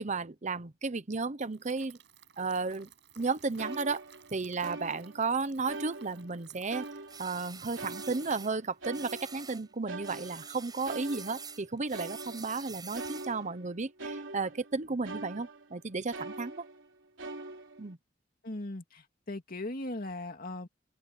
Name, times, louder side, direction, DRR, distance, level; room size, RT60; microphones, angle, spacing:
voice 1, 0.0-2.0 2.4-2.9 3.2-4.0 4.3-6.8 7.2-16.6 17.8-18.0, right 4 dB, 40° right, 0.9 m, -33 dB
sound 1, 1.4-9.4, right 9 dB, 65° right, 7.8 m, -59 dB
sound 2, 3.2-3.3 3.6-5.3 5.7-6.4 6.7-9.6 9.9-15.8 16.1-16.9 17.2-17.9, right 2 dB, 85° right, 3.6 m, -43 dB
sound 3, 7.1-8.5 8.9-9.6 10.0-13.4, right 5 dB, 20° right, 6.1 m, -46 dB
voice 2, 18.4-20.7, left 2 dB, 50° left, 2.5 m, -38 dB
head